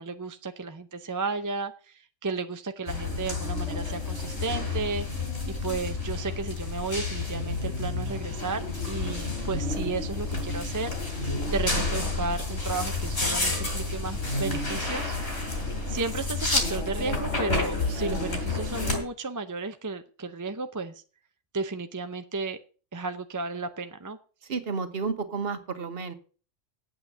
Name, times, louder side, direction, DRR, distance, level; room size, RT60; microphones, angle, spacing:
voice 1, 0.0-5.1 5.5-11.0 11.5-15.2 15.9-20.9 21.5-22.6 22.9-24.2, right 3 dB, 20° right, 8 dB, 0.5 m, -33 dB
sound 1, 2.9-19.0, left 3 dB, 55° left, 4.4 m, -30 dB
voice 2, 24.5-26.1, right 5 dB, 50° right, 9 dB, 1.4 m, -31 dB
8.7 x 8.0 x 7.8 m, 0.39 s
omnidirectional pair, 1.3 m